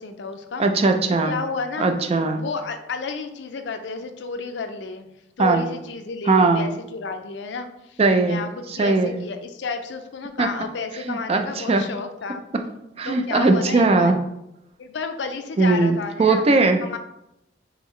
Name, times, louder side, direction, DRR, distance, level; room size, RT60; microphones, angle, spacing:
voice 1, 0.0-0.7 1.2-2.0 2.3-5.1 5.4-12.4 13.1-14.1 14.8-16.5 16.8-17.0, left 4 dB, 75° left, 7 dB, 0.4 m, -32 dB
voice 2, 0.6-1.4 1.8-2.4 5.4-5.7 6.3-6.7 8.0-8.4 8.7-9.2 10.4-10.5 11.0-11.9 13.0-14.2 15.6-16.8, right 3 dB, 35° right, 5 dB, 0.4 m, -19 dB
3.7 x 3.4 x 3.1 m, 0.84 s
head